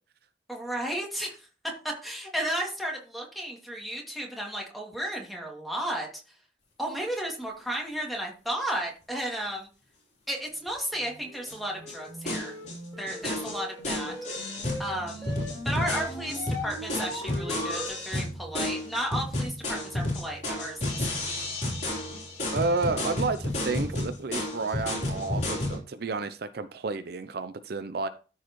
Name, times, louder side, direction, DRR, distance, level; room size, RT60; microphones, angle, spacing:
voice 1, 0.5-1.5 1.8-6.1 6.8-9.7 10.3-12.5 13.0-14.5 14.8-15.3 15.6-21.0, right 1 dB, ahead, 2.2 m, -33 dB
sound 1, 10.9-17.9, left 1 dB, 15° left, 4.5 m, -40 dB
sound 2, 11.5-11.6 11.9-12.0 12.3-12.8 13.1-25.8, left 1 dB, 40° left, 3.4 m, -32 dB
voice 2, 22.5-28.1, right 3 dB, 55° right, 0.5 m, -31 dB
13.5 x 4.7 x 3.0 m
head